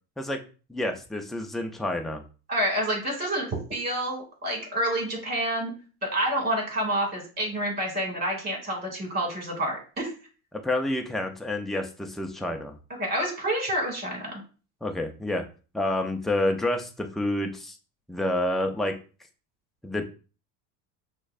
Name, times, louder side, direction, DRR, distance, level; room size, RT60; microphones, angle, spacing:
voice 1, 0.7-2.2 10.6-12.7 14.8-15.4 15.7-17.8 18.1-19.0 19.8-20.0, left 1 dB, ahead, 3 dB, 0.3 m, -28 dB
voice 2, 2.5-5.7 6.0-10.1 13.0-14.4, right 1 dB, 25° right, 0 dB, 2.1 m, -28 dB
6.0 x 2.2 x 2.4 m, 0.35 s
supercardioid pair, 115°, 39 cm